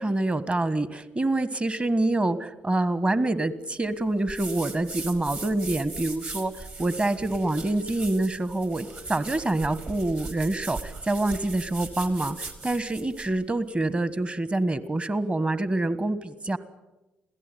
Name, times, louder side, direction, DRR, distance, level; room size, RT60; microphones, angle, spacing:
voice 1, 0.0-16.6, right 2 dB, 25° right, 14 dB, 1.5 m, -26 dB
sound 1, 4.3-13.3, right 3 dB, 50° right, 4.9 m, -39 dB
26.5 x 17.0 x 9.2 m, 1.1 s
hypercardioid pair, 45°, 4 cm